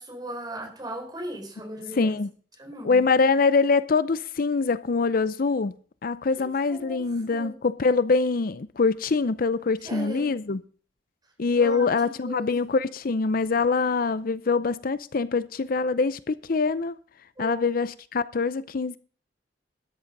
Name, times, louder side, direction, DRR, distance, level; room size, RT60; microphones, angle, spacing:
voice 1, 0.0-2.2 2.6-3.0 6.7-7.0 7.3-7.6 9.8-10.4 11.5-11.9 12.3-12.5 17.4-17.6, right 1 dB, 25° right, 4.4 m, -37 dB
voice 2, 1.9-2.3 2.8-5.7 6.0-10.6 11.4-17.0 17.4-19.0, left 4 dB, 55° left, 0.6 m, -24 dB
13.0 x 10.0 x 5.3 m
head